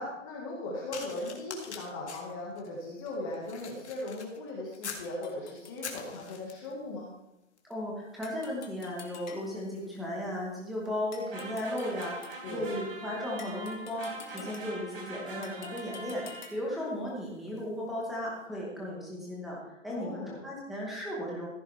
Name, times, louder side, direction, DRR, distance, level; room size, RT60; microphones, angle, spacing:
voice 1, 0.0-7.1 12.4-12.7 14.4-14.5 19.9-20.4, left 2 dB, 15° left, -3 dB, 1.5 m, -38 dB
sound 1, 0.9-5.1 5.6-6.8 7.6-7.8 8.1-17.8 18.5-18.6, left 6 dB, 55° left, 2.1 m, -48 dB
sound 2, 5.0-6.0 8.2-9.8 11.1-12.5 13.4-14.9 15.4-16.8, left 6 dB, 35° left, 1.2 m, -51 dB
voice 2, 7.7-21.5, left 1 dB, ahead, -4 dB, 1.0 m, -36 dB
sound 3, 11.3-16.8, right 2 dB, 45° right, 4.3 m, -43 dB
14.5 x 9.7 x 3.3 m, 0.90 s
hypercardioid pair, 170°, 39 cm